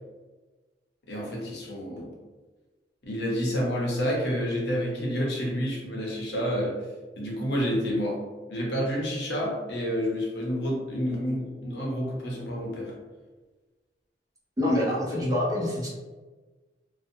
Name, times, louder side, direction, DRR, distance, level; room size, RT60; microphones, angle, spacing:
voice 1, 1.1-2.1 3.0-6.8 7.2-8.2 8.5-13.0, equal, 70° left, -2 dB, 0.7 m, -29 dB
voice 2, 14.6-15.9, left 1 dB, 20° right, -5 dB, 0.6 m, -26 dB
2.5 x 2.2 x 2.6 m, 1.3 s
head